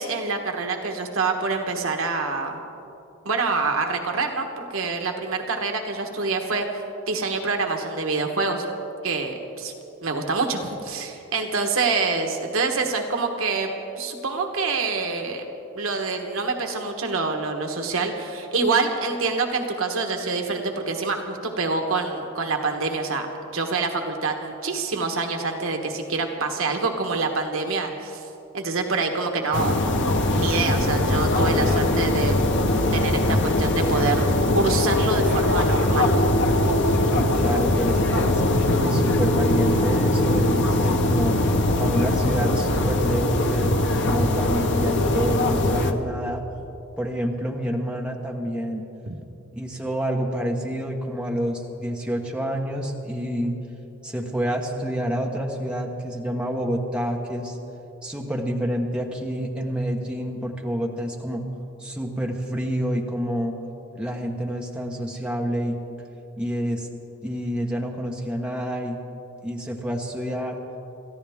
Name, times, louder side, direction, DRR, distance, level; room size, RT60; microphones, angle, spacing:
voice 1, 0.0-2.6 3.2-8.6 9.0-9.7 10.0-13.7 14.0-15.5 15.7-28.2 28.5-29.9 30.3-32.4 32.9-36.1 49.1-49.2, right 4 dB, 75° right, 3 dB, 1.3 m, -26 dB
sound 1, 29.5-45.9, left 1 dB, 55° left, 1.0 m, -21 dB
voice 2, 37.1-38.4 38.7-41.4 41.8-46.4 47.0-48.9 49.5-53.5 54.0-57.6 58.0-61.4 61.8-63.6 63.9-65.8 66.4-66.9 67.2-69.0 69.4-70.6, equal, 5° right, 0 dB, 1.3 m, -28 dB
28.5 x 14.0 x 3.6 m, 2.9 s
head